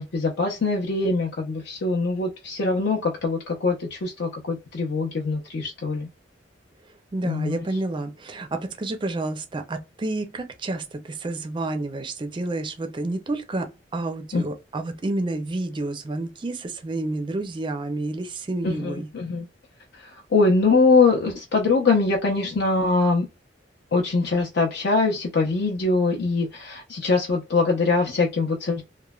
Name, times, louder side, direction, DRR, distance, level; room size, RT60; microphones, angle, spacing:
voice 1, 0.0-6.1 7.2-7.6 14.3-14.4 18.6-19.5 20.1-23.3 23.9-28.8, left 3 dB, 65° left, 0.6 m, -23 dB
voice 2, 7.1-19.1, right 2 dB, 25° right, 0.4 m, -30 dB
3.0 x 2.1 x 2.2 m
head